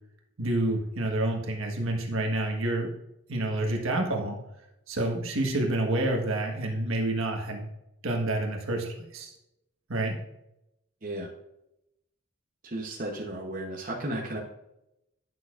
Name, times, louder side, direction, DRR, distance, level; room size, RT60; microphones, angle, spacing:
voice 1, 0.4-2.9 3.3-4.4 4.9-7.6 8.0-9.3 9.9-10.2, right 1 dB, 70° right, 1 dB, 1.5 m, -28 dB
voice 2, 12.6-14.4, right 1 dB, 40° right, -1 dB, 0.9 m, -34 dB
10.5 x 6.3 x 2.5 m, 0.86 s
head